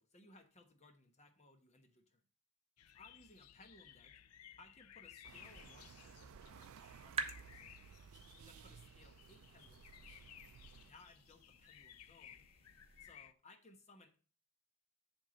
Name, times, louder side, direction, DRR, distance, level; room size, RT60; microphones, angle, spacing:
voice 1, 0.0-2.2 2.9-4.2 4.6-7.8 8.4-10.0 10.8-12.5 13.0-14.2, left 2 dB, 30° left, 6 dB, 1.2 m, -63 dB
sound 1, 2.8-13.3, left 10 dB, 90° left, 0.5 m, -60 dB
sound 2, 5.2-10.9, right 7 dB, 70° right, 0.4 m, -58 dB
sound 3, 5.3-13.1, right 5 dB, 25° right, 0.9 m, -51 dB
11.0 x 3.7 x 5.1 m, 0.39 s
head